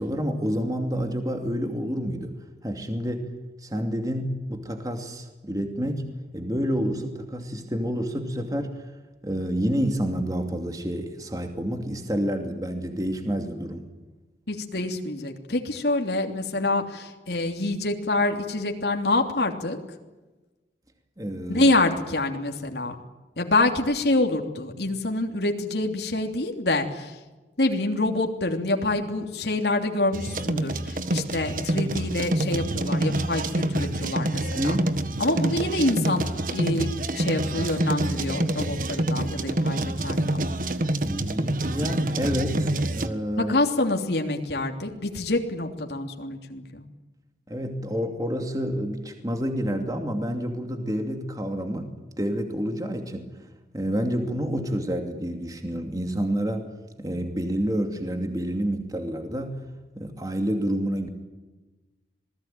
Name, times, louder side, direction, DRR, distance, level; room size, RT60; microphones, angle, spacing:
voice 1, 0.0-2.3 2.6-3.2 3.6-8.9 9.2-13.9 21.2-21.7 34.5-34.9 41.0-43.5 47.5-53.3 53.7-56.7 57.0-59.6 60.0-61.1, equal, 20° right, 4 dB, 2.6 m, -28 dB
voice 2, 14.5-19.8 21.5-23.0 23.4-27.2 27.6-34.8 35.2-40.4 43.4-46.8, left 2 dB, 75° left, 3 dB, 3.1 m, -26 dB
sound 1, 30.1-43.1, right 1 dB, 50° right, 1.7 m, -27 dB
27.5 x 20.0 x 9.2 m, 1.2 s
head